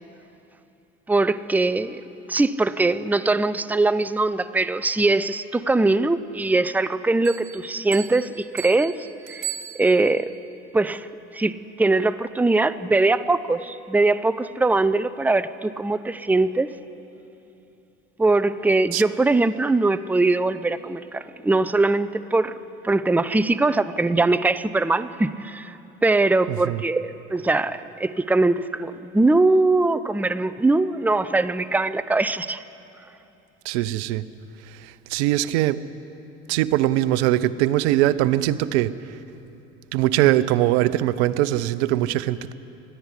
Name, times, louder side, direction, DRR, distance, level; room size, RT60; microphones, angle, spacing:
voice 1, 1.1-2.0 2.3-9.5 9.8-10.3 10.7-11.1 11.3-16.7 18.2-22.5 22.8-32.6, right 2 dB, 5° right, 0.6 m, -21 dB
sound 1, 7.2-10.3, right 11 dB, 55° right, 3.0 m, -37 dB
voice 2, 26.5-26.8 33.6-34.3 34.6-35.8 36.5-39.2 39.9-42.5, right 14 dB, 75° right, 0.7 m, -22 dB
21.0 x 14.0 x 9.9 m
hypercardioid pair, 70°, 33 cm